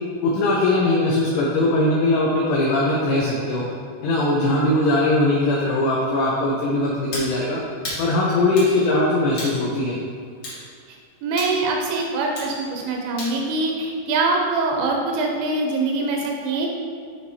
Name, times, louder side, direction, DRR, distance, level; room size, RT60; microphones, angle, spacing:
voice 1, 0.2-3.7 4.0-7.6 8.0-10.0, left 2 dB, 85° left, -4 dB, 2.4 m, -20 dB
sound 1, 7.1-7.3 7.8-8.1 8.6-8.7 9.4-9.6 10.4-10.6 11.4-11.6 12.4-12.5 13.2-13.4, left 1 dB, 60° left, 1.7 m, -31 dB
voice 2, 11.2-16.7, right 3 dB, 80° right, 0 dB, 3.0 m, -23 dB
10.5 x 4.6 x 2.8 m, 2.2 s
omnidirectional pair, 5.8 m